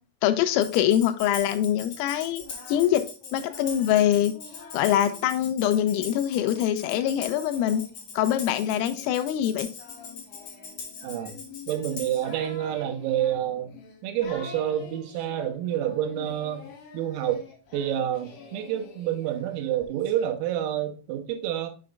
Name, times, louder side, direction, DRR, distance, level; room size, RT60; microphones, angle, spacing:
voice 1, 0.2-2.4 2.7-3.1 3.3-4.3 4.7-7.8 8.2-9.7, left 11 dB, 90° left, 3.4 m, -24 dB
Tambourine, 0.6-12.3, left 5 dB, 70° left, 1.4 m, -41 dB
Singing, 2.2-5.3 5.8-20.3, left 5 dB, 55° left, 3.4 m, -47 dB
voice 2, 11.0-11.4 11.7-13.7 14.0-17.5 17.7-21.7, right 11 dB, 90° right, 3.8 m, -28 dB
7.5 x 6.9 x 2.3 m
omnidirectional pair, 6.0 m